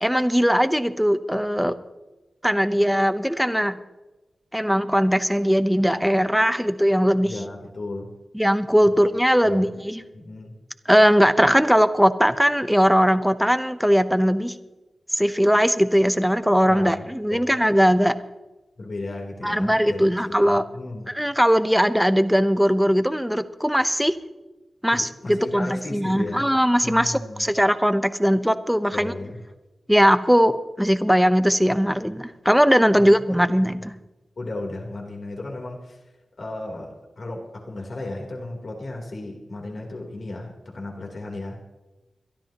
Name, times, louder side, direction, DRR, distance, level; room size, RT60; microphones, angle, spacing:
voice 1, 0.0-1.7 2.4-3.8 4.5-7.3 8.3-10.0 10.9-14.5 15.1-18.2 19.4-20.6 21.1-24.2 24.8-29.1 29.9-34.0, equal, ahead, 11 dB, 0.9 m, -20 dB
voice 2, 7.2-8.1 9.4-9.7 10.1-10.6 16.7-17.5 18.8-21.1 24.9-26.5 26.8-27.5 28.9-29.4 33.0-33.4 33.8-33.9 34.4-36.0 36.4-41.6, left 2 dB, 60° left, 0 dB, 3.5 m, -35 dB
22.5 x 13.0 x 3.0 m, 1.1 s
cardioid pair, 60°, 0 cm